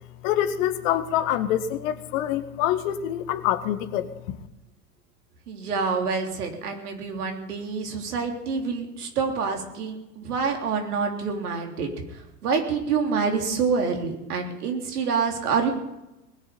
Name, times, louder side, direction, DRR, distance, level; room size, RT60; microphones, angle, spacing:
voice 1, 0.2-4.4, left 11 dB, 55° left, 10 dB, 1.7 m, -26 dB
voice 2, 5.5-15.7, right 5 dB, 70° right, 3 dB, 3.6 m, -27 dB
19.5 x 7.1 x 9.7 m, 0.94 s
hypercardioid pair, 90°, 47 cm